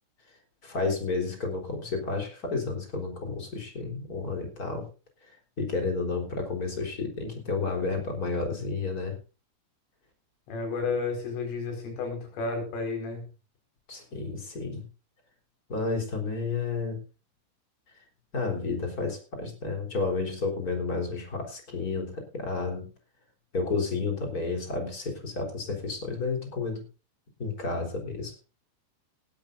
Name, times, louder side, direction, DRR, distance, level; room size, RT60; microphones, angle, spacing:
voice 1, 0.6-4.9 5.6-9.2 13.9-14.8 15.7-17.0 18.3-22.9 23.5-26.8 27.4-28.3, left 4 dB, 20° left, 3 dB, 3.4 m, -31 dB
voice 2, 10.5-13.3, left 4 dB, 80° left, 3 dB, 7.4 m, -32 dB
19.5 x 12.0 x 2.6 m, 0.32 s
omnidirectional pair, 5.7 m